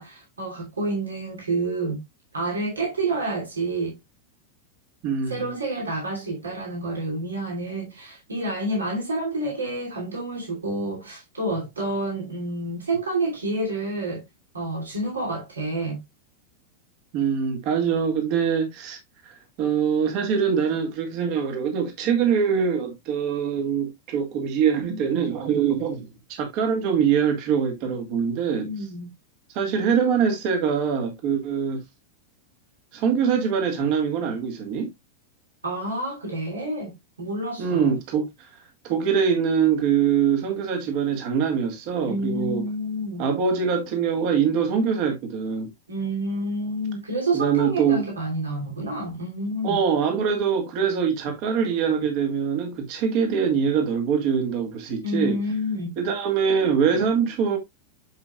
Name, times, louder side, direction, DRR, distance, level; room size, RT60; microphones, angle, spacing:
voice 1, 0.0-2.0 2.3-4.0 5.3-14.2 14.5-16.0 28.6-29.1 35.6-37.9 42.1-43.3 45.9-49.8 55.0-55.9 56.9-57.1, right 1 dB, 75° right, 2.7 m, -29 dB
voice 2, 5.0-5.5 17.1-19.0 19.2-28.7 29.5-31.8 32.9-34.9 37.6-38.3 38.8-42.6 43.2-45.7 47.3-48.0 49.6-55.4 56.0-57.6, right 7 dB, 45° right, 1.9 m, -23 dB
9.3 x 5.4 x 2.4 m
figure-of-eight pair, 90°, 0 cm